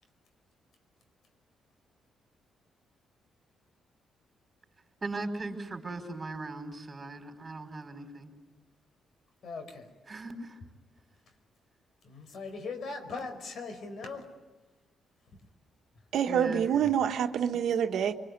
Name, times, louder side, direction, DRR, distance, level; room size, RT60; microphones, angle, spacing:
voice 1, 5.0-8.3 10.1-10.6 16.3-16.7, right 2 dB, 30° right, 5 dB, 5.0 m, -39 dB
voice 2, 9.4-9.9 12.0-14.3, left 4 dB, 65° left, 7 dB, 4.9 m, -39 dB
voice 3, 16.1-18.1, right 8 dB, 75° right, 6 dB, 1.3 m, -27 dB
25.0 x 24.5 x 9.6 m, 1.2 s
cardioid pair, 80°, 0 cm